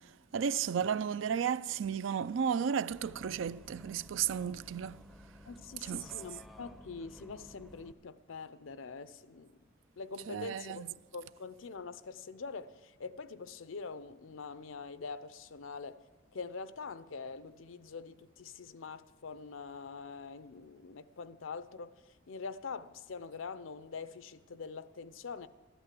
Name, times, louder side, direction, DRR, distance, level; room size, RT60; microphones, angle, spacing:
voice 1, 0.3-5.0 5.8-6.1 10.3-10.9, right 7 dB, 75° right, 0.4 m, -33 dB
Bus, 2.9-7.9, left 1 dB, ahead, 0.5 m, -54 dB
voice 2, 5.4-9.6 10.0-16.0 16.3-21.9 22.3-25.5, left 4 dB, 90° left, 0.6 m, -44 dB
13.0 x 11.0 x 7.6 m
head